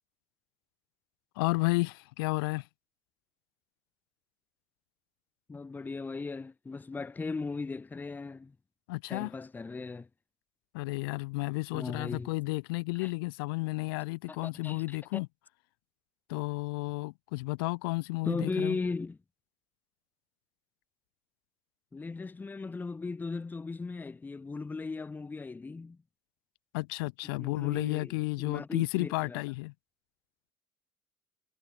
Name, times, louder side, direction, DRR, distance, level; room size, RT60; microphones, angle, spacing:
voice 1, 1.4-2.7 8.9-9.3 10.7-15.3 16.3-18.8 26.7-29.7, left 25 dB, 85° left, 0.6 m, -32 dB
voice 2, 5.5-8.6 9.1-10.1 11.7-12.3 13.0-13.1 14.3-15.2 18.2-19.2 21.9-26.0 27.2-29.4, left 4 dB, 15° left, 0.5 m, -37 dB
supercardioid pair, 80°, 12 cm